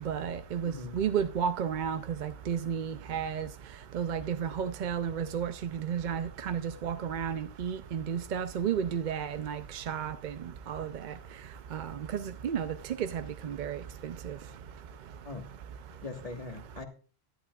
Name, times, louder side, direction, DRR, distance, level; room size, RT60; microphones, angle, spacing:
voice 1, 0.1-3.5 3.9-10.3 10.7-11.1 11.7-14.4, right 8 dB, 55° right, 0.6 m, -33 dB
voice 2, 0.6-1.0 15.2-15.4 16.0-16.8, left 3 dB, 35° left, 1.5 m, -40 dB
11.5 x 11.0 x 2.3 m
omnidirectional pair, 1.1 m